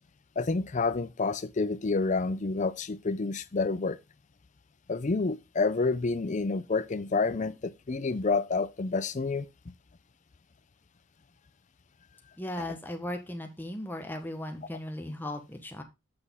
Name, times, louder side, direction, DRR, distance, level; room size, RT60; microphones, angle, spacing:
voice 1, 0.4-4.0 4.9-9.7, left 3 dB, 35° left, 0.4 m, -29 dB
voice 2, 12.4-15.8, left 1 dB, 10° left, 1.0 m, -37 dB
7.8 x 6.2 x 3.6 m
head